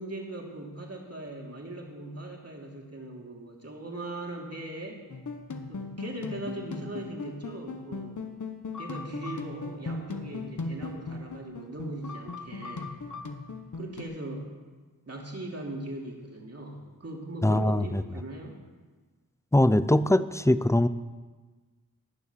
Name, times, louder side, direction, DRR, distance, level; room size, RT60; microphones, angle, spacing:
voice 1, 0.0-5.0 5.7-8.3 8.8-12.9 13.8-14.5 15.1-18.6, right 1 dB, 45° right, -1 dB, 2.9 m, -39 dB
sound 1, 5.1-14.0, left 3 dB, 60° left, 1.2 m, -38 dB
voice 2, 17.4-18.0 19.5-20.9, left 1 dB, 10° left, 14 dB, 0.5 m, -22 dB
19.0 x 7.0 x 6.8 m, 1.3 s
wide cardioid pair, 65°, 34 cm